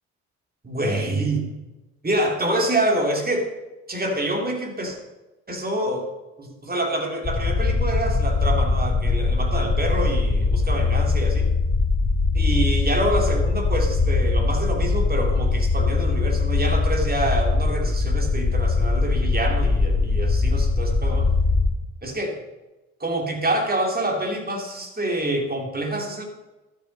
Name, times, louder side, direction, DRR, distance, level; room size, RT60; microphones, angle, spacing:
voice 1, 0.6-1.4 2.0-3.5 3.9-5.0 5.5-6.1 6.4-11.5 12.3-21.3 22.0-22.3 23.0-26.2, right 1 dB, 25° right, 2 dB, 2.9 m, -26 dB
sound 1, 7.2-21.7, left 3 dB, 40° left, 3.2 m, -21 dB
12.0 x 6.4 x 5.4 m, 1.1 s
hypercardioid pair, 45°, 37 cm